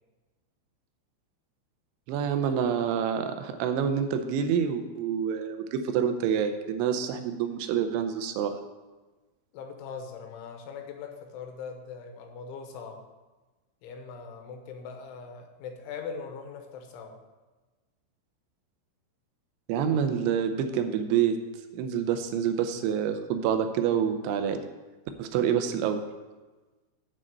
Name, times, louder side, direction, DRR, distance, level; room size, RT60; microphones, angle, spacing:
voice 1, 2.1-8.6 19.7-21.4 21.7-24.6 25.2-26.0, right 8 dB, 80° right, 7 dB, 3.1 m, -27 dB
voice 2, 9.5-13.1 13.8-17.2, left 5 dB, 85° left, 4 dB, 3.4 m, -41 dB
7.9 x 6.2 x 7.6 m, 1.2 s
omnidirectional pair, 5.5 m